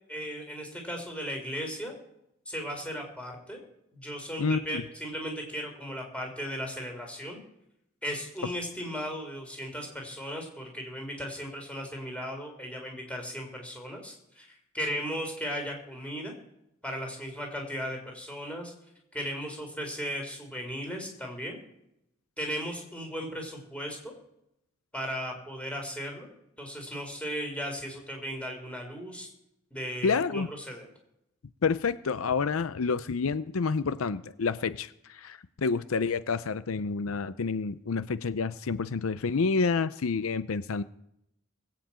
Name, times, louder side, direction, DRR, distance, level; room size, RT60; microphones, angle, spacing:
voice 1, 0.1-1.9 2.5-3.6 3.9-7.4 8.0-16.3 16.8-18.7 19.1-21.6 22.4-24.1 24.9-26.3 26.6-29.3 29.7-30.9, equal, 5° left, 1 dB, 4.3 m, -36 dB
voice 2, 4.4-4.8 30.0-30.5 31.6-40.8, left 4 dB, 80° left, 15 dB, 0.6 m, -29 dB
20.0 x 7.7 x 8.7 m, 0.81 s
head